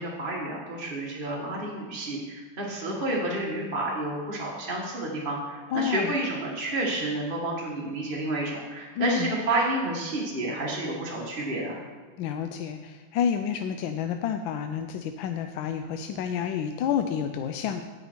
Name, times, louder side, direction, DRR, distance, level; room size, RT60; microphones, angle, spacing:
voice 1, 0.0-11.8, right 2 dB, 25° right, -3 dB, 1.5 m, -30 dB
voice 2, 5.7-6.1 9.0-9.3 12.2-17.8, left 8 dB, 75° left, 6 dB, 1.2 m, -29 dB
16.5 x 5.6 x 4.4 m, 1.4 s
omnidirectional pair, 2.4 m